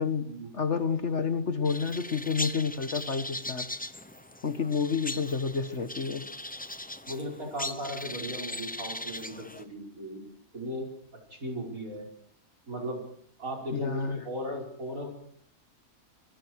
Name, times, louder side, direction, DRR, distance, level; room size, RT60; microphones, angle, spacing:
voice 1, 0.5-3.7 4.4-6.3 13.7-14.2, left 5 dB, 50° left, 10 dB, 1.7 m, -29 dB
sound 1, 1.6-9.6, left 1 dB, 10° left, 0.7 m, -39 dB
voice 2, 7.1-10.2 10.5-10.9 11.3-12.1 12.7-13.0 13.4-15.1, equal, 60° right, 0 dB, 6.2 m, -37 dB
26.0 x 21.5 x 4.8 m, 0.62 s
omnidirectional pair, 1.6 m